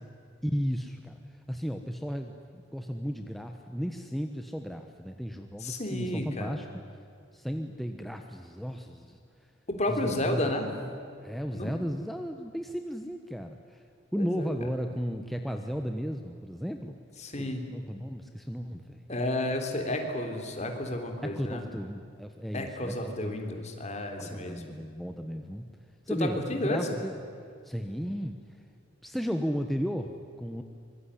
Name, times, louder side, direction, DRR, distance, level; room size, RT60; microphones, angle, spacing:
voice 1, 0.4-1.2 1.5-6.7 7.3-9.2 9.9-10.8 11.2-13.8 14.1-17.0 17.3-19.0 21.2-23.6 24.2-25.7 26.1-27.2 27.6-28.4 29.0-30.6, equal, ahead, 5 dB, 1.1 m, -34 dB
voice 2, 5.6-6.6 9.7-10.7 11.5-11.7 14.2-14.5 17.2-17.6 19.1-21.6 22.5-24.7 26.1-26.9, left 1 dB, 35° left, 4 dB, 3.6 m, -32 dB
25.0 x 22.5 x 10.0 m, 2.4 s
head